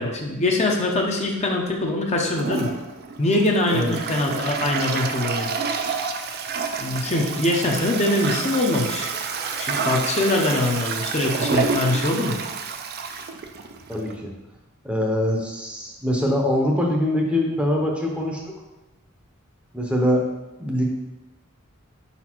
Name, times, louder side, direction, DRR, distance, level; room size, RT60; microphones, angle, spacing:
voice 1, 0.0-2.7 3.2-5.5 6.8-9.1 9.6-12.4, left 2 dB, 30° left, 0 dB, 0.6 m, -23 dB
Toilet flush, 2.3-14.1, right 5 dB, 45° right, 0.4 m, -29 dB
voice 2, 13.9-14.3 14.8-18.5 19.7-20.2 20.6-20.9, left 1 dB, 5° right, -1 dB, 0.7 m, -23 dB
5.1 x 4.2 x 4.4 m, 1.0 s
head